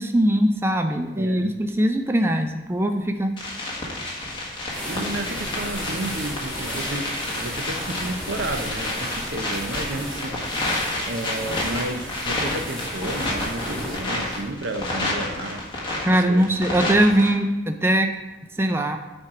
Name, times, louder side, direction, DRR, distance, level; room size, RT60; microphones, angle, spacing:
voice 1, 0.0-3.3 16.1-18.1 18.6-19.0, right 1 dB, 15° right, 6 dB, 0.4 m, -21 dB
voice 2, 1.1-1.5 4.9-10.4 11.0-15.6 16.1-17.0, right 1 dB, 75° right, 7 dB, 0.7 m, -32 dB
sound 1, 3.4-17.3, left 1 dB, 25° left, 1.5 m, -30 dB
sound 2, 4.6-14.5, equal, 5° left, 2.7 m, -35 dB
8.8 x 4.5 x 4.8 m, 1.1 s
head